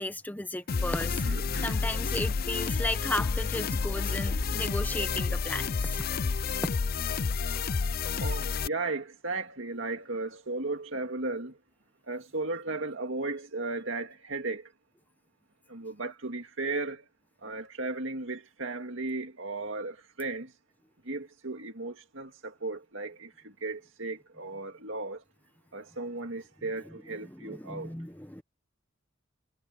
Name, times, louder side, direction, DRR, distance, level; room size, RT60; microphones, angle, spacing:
voice 1, 0.0-1.2 1.6-6.0 27.3-28.4, left 1 dB, 10° left, 1.0 m, -35 dB
sound 1, 0.7-8.7, left 5 dB, 50° left, 0.5 m, -30 dB
voice 2, 1.2-1.8 8.2-11.6 12.1-14.7 15.7-17.0 17.4-20.5 21.1-25.2 25.7-27.9, right 3 dB, 70° right, 2.2 m, -35 dB
sound 2, 3.9-6.8, equal, 75° left, 2.8 m, -42 dB
head